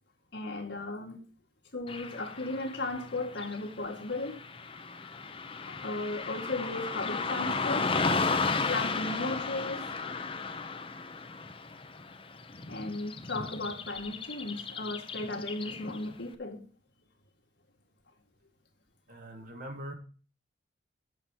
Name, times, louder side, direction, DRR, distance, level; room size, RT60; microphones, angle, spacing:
voice 1, 0.3-1.2 1.7-4.4 5.6-8.0 8.7-9.9 12.7-16.6, left 2 dB, 60° left, 2.2 m, -36 dB
Car passing by / Traffic noise roadway noise, 1.9-16.2, left 4 dB, 30° left, 0.7 m, -35 dB
voice 2, 19.1-19.9, right 1 dB, 45° right, 1.9 m, -42 dB
7.8 x 6.1 x 7.3 m
head